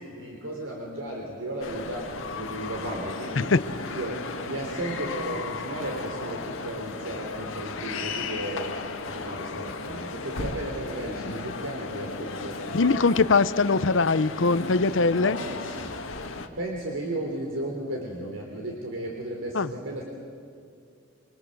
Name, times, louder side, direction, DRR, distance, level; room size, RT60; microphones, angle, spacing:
voice 1, 0.0-3.5 3.9-13.0 15.2-16.0 16.6-20.0, right 1 dB, 80° right, 0 dB, 3.7 m, -35 dB
sound 1, 1.6-16.5, left 3 dB, 85° left, 1.9 m, -35 dB
voice 2, 12.7-15.4 19.5-19.7, left 4 dB, 65° left, 15 dB, 0.7 m, -22 dB
26.5 x 24.5 x 7.9 m, 2.4 s
head